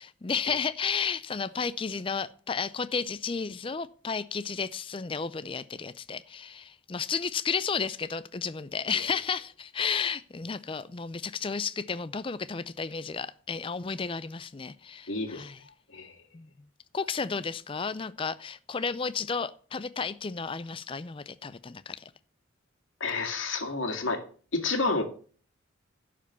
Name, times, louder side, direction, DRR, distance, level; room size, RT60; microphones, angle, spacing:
voice 1, 0.0-15.6 16.3-16.5 16.9-22.1, left 5 dB, 25° left, 15 dB, 0.4 m, -32 dB
voice 2, 15.1-15.5 15.9-16.2 23.0-24.2 24.5-25.0, left 3 dB, 85° left, 3 dB, 2.2 m, -29 dB
11.5 x 5.0 x 6.8 m, 0.42 s
head